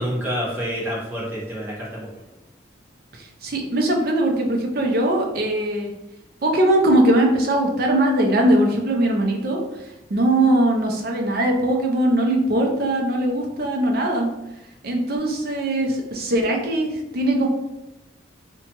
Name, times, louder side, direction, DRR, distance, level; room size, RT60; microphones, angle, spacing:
voice 1, 0.0-2.1, equal, 10° right, -7 dB, 0.9 m, -28 dB
voice 2, 3.1-5.9 6.4-9.6 10.1-14.3 14.8-17.5, right 1 dB, 50° right, 1 dB, 0.5 m, -20 dB
2.8 x 2.2 x 2.9 m, 0.95 s
head